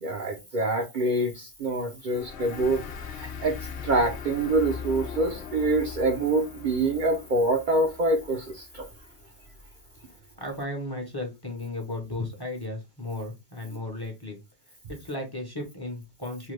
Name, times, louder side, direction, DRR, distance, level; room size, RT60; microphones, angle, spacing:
voice 1, 0.0-8.9, right 2 dB, 55° right, 0.7 m, -26 dB
sound 1, 2.1-9.2, left 6 dB, 80° left, 0.9 m, -40 dB
voice 2, 10.4-14.4 14.9-16.5, left 1 dB, 25° left, 0.8 m, -35 dB
3.2 x 2.3 x 3.1 m
omnidirectional pair, 1.1 m